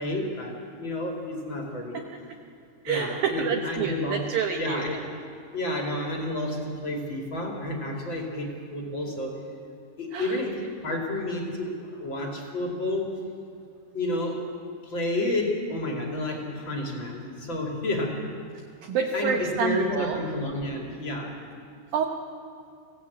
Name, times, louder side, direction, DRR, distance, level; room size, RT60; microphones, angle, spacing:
voice 1, 0.0-2.1 2.9-4.3 4.5-5.1 5.5-9.4 10.0-13.1 13.9-14.4 14.8-18.2 19.0-21.4, left 1 dB, 35° left, 0 dB, 2.1 m, -30 dB
voice 2, 2.8-4.9 10.1-10.3 18.8-20.2 21.9-22.0, right 7 dB, 80° right, 3 dB, 2.1 m, -28 dB
24.5 x 16.5 x 8.4 m, 2.3 s
omnidirectional pair, 5.6 m